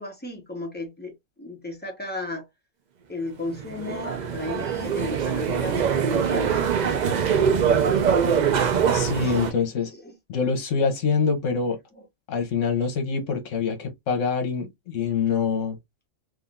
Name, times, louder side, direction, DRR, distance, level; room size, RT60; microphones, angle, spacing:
voice 1, 0.0-2.5 3.1-6.5 9.2-9.3 9.9-10.1 12.0-12.1, left 2 dB, 10° left, 1.0 m, -34 dB
sound 1, 3.5-9.5, right 7 dB, 60° right, 0.4 m, -23 dB
voice 2, 8.9-9.9 10.3-11.8 12.3-15.8, left 5 dB, 65° left, 1.3 m, -25 dB
3.7 x 2.6 x 2.5 m
omnidirectional pair, 1.4 m